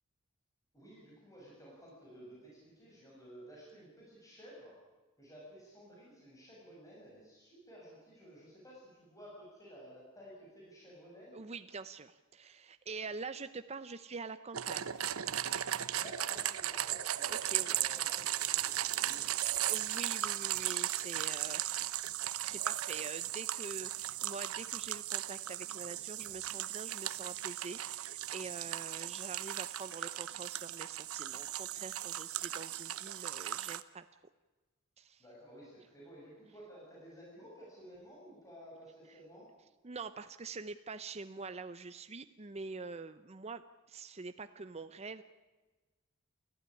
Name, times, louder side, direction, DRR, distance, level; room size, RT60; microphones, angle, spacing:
voice 1, 0.7-4.7 5.2-11.4 16.0-19.7 35.2-39.5, equal, 15° left, -5 dB, 7.3 m, -54 dB
voice 2, 11.3-15.0 17.3-17.8 19.6-34.0 35.0-35.2 39.8-43.6 43.9-45.2, right 4 dB, 30° right, 10 dB, 0.7 m, -45 dB
sound 1, 14.5-33.8, right 12 dB, 90° right, 0.9 m, -37 dB
29.0 x 15.0 x 9.9 m, 1.2 s
head